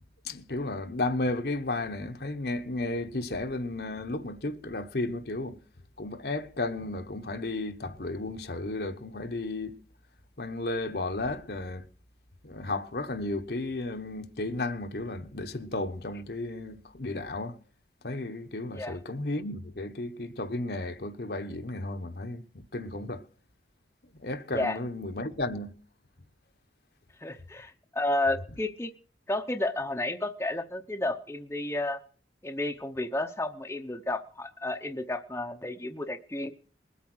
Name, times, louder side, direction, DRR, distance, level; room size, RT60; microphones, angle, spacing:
voice 1, 0.2-5.6 6.0-9.8 10.4-11.8 12.4-17.6 18.0-23.2 24.2-25.7, left 2 dB, 60° left, 1.2 m, -33 dB
voice 2, 27.2-28.9 29.3-32.0 32.4-36.5, left 2 dB, 15° left, 0.9 m, -31 dB
21.0 x 8.5 x 6.3 m
head